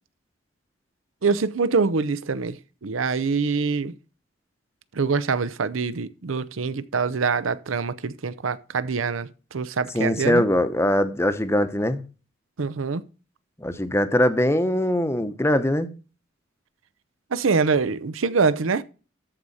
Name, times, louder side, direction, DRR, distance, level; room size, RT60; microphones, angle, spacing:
voice 1, 1.2-2.6 2.8-3.9 4.9-10.4 12.6-13.0 17.3-18.8, right 4 dB, 85° right, 0.7 m, -24 dB
voice 2, 9.9-12.0 13.6-15.9, left 1 dB, 15° left, 0.8 m, -22 dB
13.5 x 4.9 x 4.1 m
head